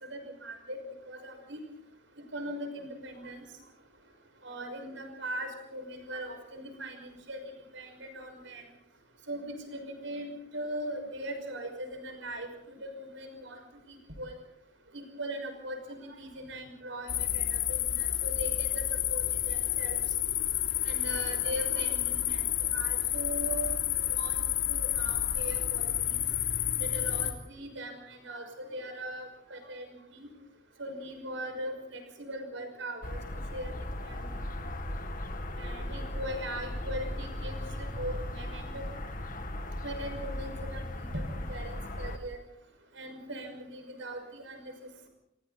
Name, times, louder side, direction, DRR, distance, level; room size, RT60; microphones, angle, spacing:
voice 1, 0.1-0.8 1.1-1.6 2.3-3.4 4.4-7.4 7.7-8.6 9.3-10.3 10.5-13.6 13.9-14.3 14.9-18.8 19.1-20.0 20.8-22.5 22.7-24.4 24.7-25.8 26.8-29.9 30.1-30.3 30.8-33.2 33.5-33.7 34.0-34.3 35.6-37.6 38.0-38.9 39.8-42.4 43.0-44.7, right 1 dB, 70° right, 6 dB, 5.9 m, -40 dB
sound 1, 17.1-27.3, left 11 dB, 75° left, 3.1 m, -30 dB
sound 2, 33.0-42.2, left 1 dB, 45° left, 2.0 m, -37 dB
28.5 x 23.0 x 4.2 m, 0.77 s
head